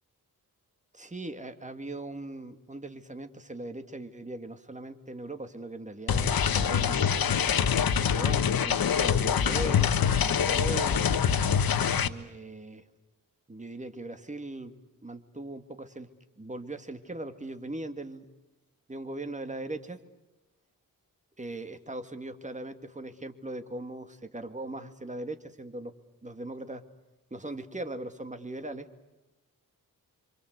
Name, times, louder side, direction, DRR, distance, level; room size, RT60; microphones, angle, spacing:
voice 1, 0.9-7.2 8.1-11.0 12.0-12.8 13.5-14.7 15.0-16.1 16.4-18.3 18.9-20.0 21.4-25.9 26.2-26.8 27.3-28.9, right 2 dB, 20° right, 8 dB, 2.2 m, -39 dB
sound 1, 6.1-12.1, left 7 dB, 75° left, 1.3 m, -25 dB
28.0 x 26.0 x 8.2 m, 0.99 s
wide cardioid pair, 120°, 35 cm